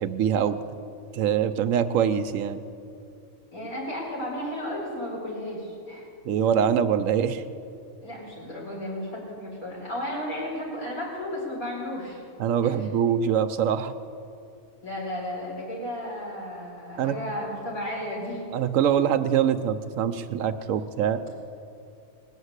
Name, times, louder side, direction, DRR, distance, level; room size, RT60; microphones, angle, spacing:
voice 1, 0.0-0.6 1.1-2.6 6.2-7.4 12.4-13.9 17.0-17.2 18.5-21.2, right 8 dB, 80° right, 10 dB, 1.0 m, -24 dB
voice 2, 3.5-6.1 8.0-12.2 12.6-12.8 14.8-18.4, left 1 dB, 85° left, -5 dB, 5.2 m, -33 dB
20.0 x 7.2 x 8.1 m, 2.5 s
omnidirectional pair, 1.4 m